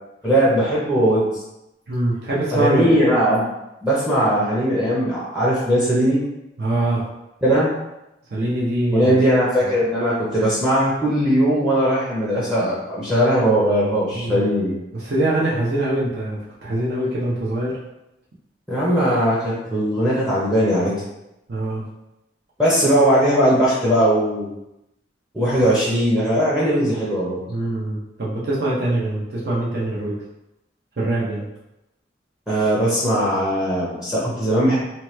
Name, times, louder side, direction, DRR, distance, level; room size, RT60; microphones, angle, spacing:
voice 1, 0.2-1.4 2.5-3.5 3.8-6.2 7.4-7.7 8.9-14.7 18.7-21.0 22.6-24.5 25.3-27.4 32.5-34.8, equal, 5° right, -7 dB, 0.6 m, -19 dB
voice 2, 1.9-2.9 6.6-7.0 8.3-9.2 14.1-14.4 14.9-17.8 21.5-21.8 27.5-30.2 31.0-31.5, right 1 dB, 60° right, -6 dB, 0.6 m, -23 dB
2.9 x 2.2 x 3.1 m, 0.91 s
head